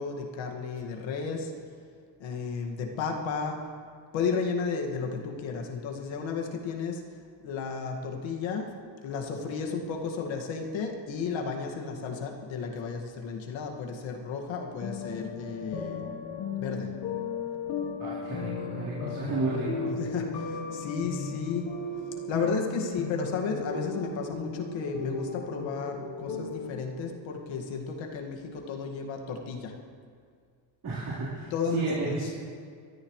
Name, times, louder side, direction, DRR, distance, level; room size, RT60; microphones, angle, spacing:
voice 1, 0.0-1.5 2.2-3.6 4.1-7.0 7.4-8.7 9.0-16.0 16.6-16.9 20.0-21.7 22.3-29.7 31.5-32.2, left 5 dB, 80° left, 1 dB, 2.1 m, -33 dB
sound 1, 14.8-26.7, left 5 dB, 60° left, 1.5 m, -36 dB
voice 2, 18.0-19.9 30.8-32.4, right 2 dB, 50° right, -10 dB, 4.2 m, -32 dB
22.5 x 14.5 x 3.2 m, 2.1 s
cardioid pair, 110°, 45 cm